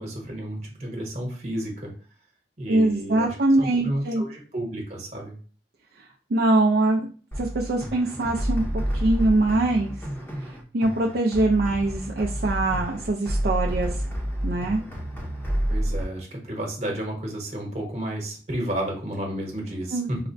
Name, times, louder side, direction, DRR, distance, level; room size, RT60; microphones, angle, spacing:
voice 1, 0.0-1.9 2.6-5.4 15.7-20.2, right 1 dB, 40° right, -1 dB, 1.0 m, -32 dB
voice 2, 2.7-4.2 6.3-7.1 7.4-8.6 8.9-9.9 10.7-14.0 14.4-14.8 19.9-20.1, right 2 dB, 60° right, -1 dB, 0.4 m, -23 dB
sound 1, 7.3-16.0, equal, 10° left, 0.6 m, -29 dB
4.8 x 2.1 x 2.6 m, 0.40 s
head